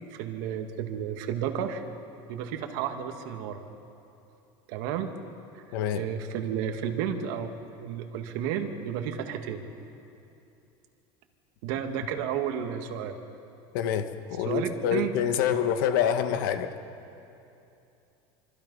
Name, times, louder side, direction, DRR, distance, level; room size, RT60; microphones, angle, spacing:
voice 1, 0.1-1.8 2.3-3.6 4.7-5.1 5.5-5.6 5.9-9.6 11.6-13.2 14.5-15.1 15.4-15.6, right 8 dB, 65° right, 5 dB, 2.0 m, -32 dB
voice 2, 5.7-6.1 13.7-16.7, left 8 dB, 75° left, 8 dB, 1.5 m, -26 dB
26.5 x 24.5 x 5.5 m, 2.7 s
cardioid pair, 170°, 11 cm